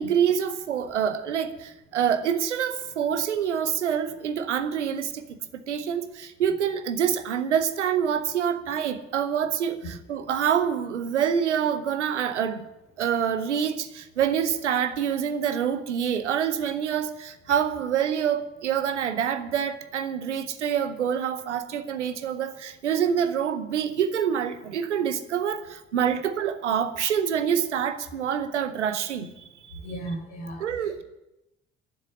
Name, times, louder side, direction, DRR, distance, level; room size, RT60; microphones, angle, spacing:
voice 1, 0.0-5.3 5.5-12.6 13.0-29.3 29.6-29.8 30.6-31.0, right 8 dB, 80° right, 0.8 m, -26 dB
voice 2, 29.8-30.6, right 1 dB, 65° left, 4.1 m, -34 dB
13.0 x 7.6 x 9.4 m
figure-of-eight pair, 45°, 35 cm